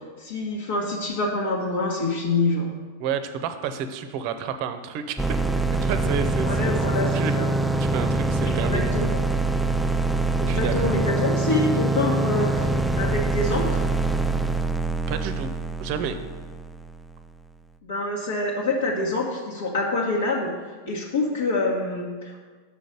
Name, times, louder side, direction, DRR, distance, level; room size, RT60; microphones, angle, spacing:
voice 1, 0.2-2.7 6.4-7.5 8.5-9.2 10.4-12.7 13.0-13.8 17.8-20.5 20.9-22.4, left 2 dB, 60° left, -4 dB, 1.2 m, -26 dB
voice 2, 3.0-5.2 5.8-6.8 7.1-7.4 7.8-8.9 10.5-10.9 15.1-15.5 15.8-16.2, right 7 dB, 45° right, 9 dB, 0.7 m, -30 dB
sound 1, 5.2-17.0, right 2 dB, ahead, 0.3 m, -24 dB
7.0 x 5.2 x 6.5 m, 1.4 s
figure-of-eight pair, 90°, 0 cm